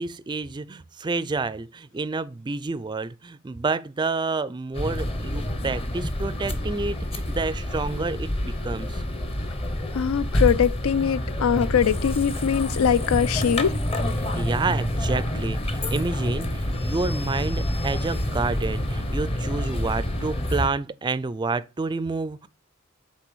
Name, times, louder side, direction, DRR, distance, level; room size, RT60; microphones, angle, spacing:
voice 1, 0.0-9.0 14.2-22.5, right 3 dB, 20° right, 0.4 m, -29 dB
sound 1, 4.7-20.7, left 1 dB, 30° left, 0.8 m, -27 dB
voice 2, 9.9-13.8, left 7 dB, 90° left, 0.4 m, -22 dB
8.2 x 3.3 x 6.1 m
head